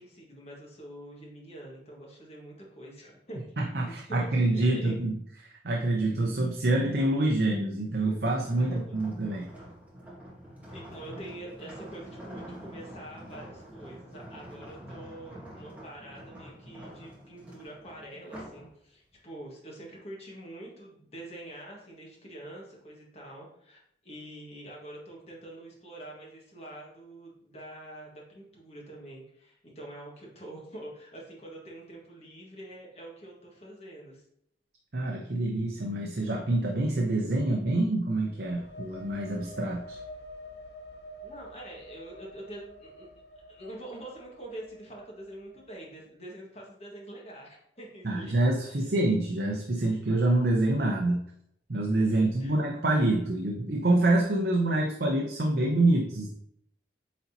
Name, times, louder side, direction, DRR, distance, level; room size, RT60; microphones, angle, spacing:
voice 1, 0.0-5.0 8.6-9.1 10.7-34.2 41.2-43.1 43.5-48.9 52.0-52.5, right 1 dB, 35° left, -2 dB, 1.7 m, -45 dB
voice 2, 3.6-5.2 5.6-9.5 34.9-40.0 48.0-51.2 51.7-56.3, right 2 dB, 60° right, -1 dB, 0.7 m, -26 dB
sound 1, 8.5-18.7 19.1-19.4, equal, 10° right, 1.4 m, -46 dB
sound 2, 38.3-45.9, left 1 dB, 70° left, 0.9 m, -48 dB
8.5 x 4.0 x 2.8 m, 0.72 s
head